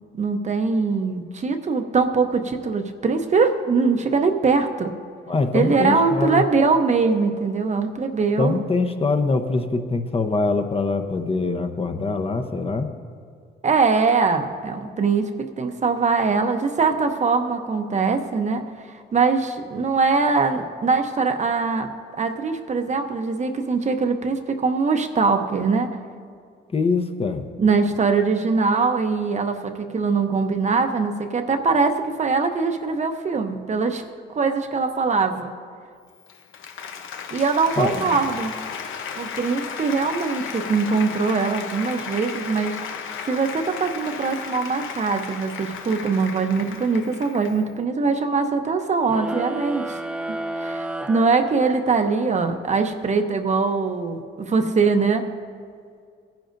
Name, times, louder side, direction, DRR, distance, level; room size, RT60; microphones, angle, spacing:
voice 1, 0.1-4.9 5.5-8.5 13.6-25.9 27.6-34.0 34.3-35.5 37.3-38.5 39.2-42.8 43.3-50.0 50.3-55.3, right 4 dB, 35° right, 6 dB, 0.8 m, -22 dB
voice 2, 5.3-6.4 8.4-12.9 26.7-27.5 37.8-38.2, left 3 dB, 30° left, 6 dB, 0.8 m, -23 dB
Applause, 36.1-47.7, left 7 dB, 85° left, 0.8 m, -34 dB
sound 1, 49.1-52.1, right 1 dB, 5° right, 0.5 m, -31 dB
18.0 x 10.5 x 2.6 m, 2.2 s
cardioid pair, 90°, 20 cm